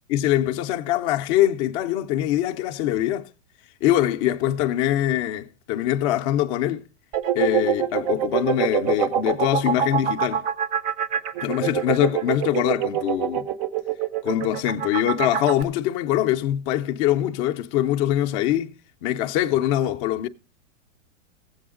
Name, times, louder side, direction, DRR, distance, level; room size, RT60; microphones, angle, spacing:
voice 1, 0.1-3.3 3.8-6.8 7.4-10.4 11.4-13.5 14.2-18.7 19.0-20.3, left 12 dB, 25° left, 0.4 m, -23 dB
sound 1, 7.1-15.6, right 10 dB, 30° right, 0.4 m, -25 dB
15.0 x 7.8 x 3.6 m
supercardioid pair, 155°, 38 cm